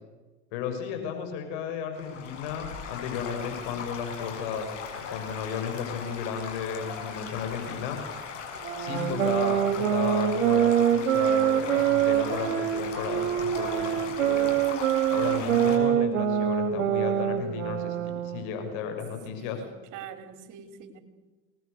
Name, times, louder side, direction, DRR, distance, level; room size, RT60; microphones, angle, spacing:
voice 1, 0.5-8.0 8.8-14.5 15.1-18.0 18.2-19.6, left 7 dB, 70° left, 5 dB, 6.2 m, -34 dB
Stream / Gurgling / Trickle dribble, 1.9-15.8, left 6 dB, 90° left, 6.3 m, -39 dB
sound 1, 8.6-18.6, right 10 dB, 85° right, 2.1 m, -25 dB
voice 2, 19.3-21.0, right 7 dB, 55° right, 7 dB, 4.3 m, -45 dB
28.0 x 20.0 x 6.7 m, 1.2 s
hypercardioid pair, 85°, 36 cm